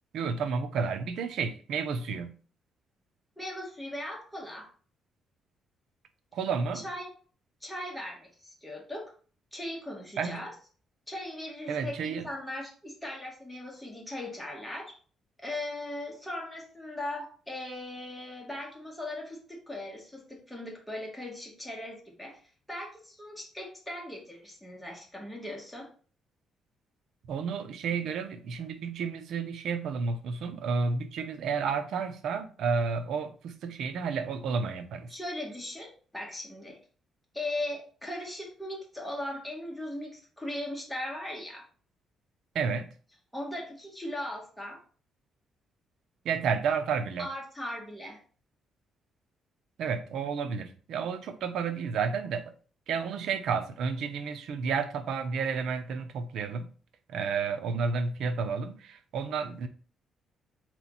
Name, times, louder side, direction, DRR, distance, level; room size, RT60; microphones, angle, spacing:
voice 1, 0.1-2.4 6.3-6.9 10.2-10.4 11.7-12.3 27.3-35.1 42.5-42.9 46.2-47.3 49.8-52.5 52.9-56.7 57.1-59.7, right 5 dB, 75° right, 9 dB, 0.6 m, -31 dB
voice 2, 3.4-4.7 6.8-7.1 7.6-9.1 9.5-10.5 11.1-14.9 15.4-22.4 22.7-25.9 35.1-36.8 37.3-41.6 43.3-44.8 47.2-48.2, left 1 dB, 5° left, -2 dB, 1.8 m, -38 dB
4.0 x 3.1 x 4.0 m, 0.42 s
cardioid pair, 90°, 0 cm